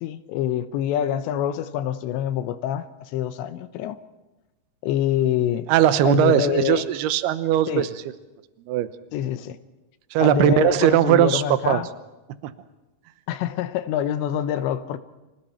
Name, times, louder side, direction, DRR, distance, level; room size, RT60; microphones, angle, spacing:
voice 1, 0.0-4.0 4.8-5.7 6.0-6.9 7.7-7.9 9.1-9.6 10.2-11.9 13.3-15.0, left 10 dB, 85° left, 3.2 m, -26 dB
voice 2, 5.7-7.9 8.7-8.9 10.1-11.8 12.4-12.5, right 12 dB, 75° right, 2.8 m, -19 dB
29.5 x 26.5 x 4.5 m
omnidirectional pair, 5.0 m